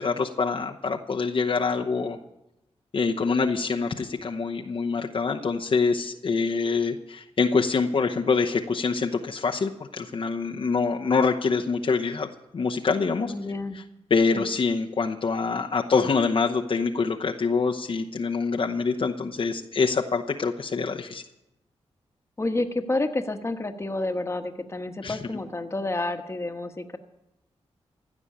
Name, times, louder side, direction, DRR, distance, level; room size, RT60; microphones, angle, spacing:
voice 1, 0.0-2.2 2.9-12.3 12.5-13.3 14.1-21.2 25.0-25.2, left 4 dB, 50° left, 2 dB, 0.9 m, -25 dB
voice 2, 13.2-13.8 14.3-14.5 22.4-27.0, left 2 dB, 25° left, 6 dB, 1.3 m, -29 dB
15.5 x 6.2 x 9.9 m, 0.93 s
cardioid pair, 65°, 11 cm